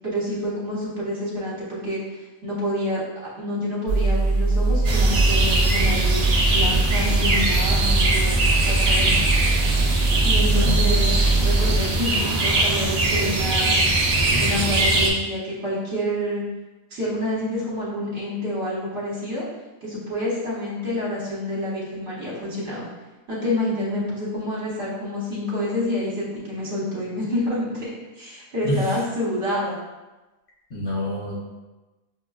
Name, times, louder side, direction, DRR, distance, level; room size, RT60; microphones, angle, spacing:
voice 1, 0.0-3.0 3.4-9.3 10.2-11.1 11.4-13.8 14.4-16.4 16.9-19.4 19.8-22.9 23.3-29.8, left 1 dB, 60° right, -7 dB, 1.2 m, -28 dB
sound 1, 3.9-11.8, right 2 dB, 80° left, 1.4 m, -22 dB
sound 2, 4.8-15.1, right 2 dB, 80° right, 0.3 m, -22 dB
voice 2, 30.7-31.4, equal, 55° left, -7 dB, 1.3 m, -27 dB
6.2 x 2.1 x 2.3 m, 1.1 s
omnidirectional pair, 1.4 m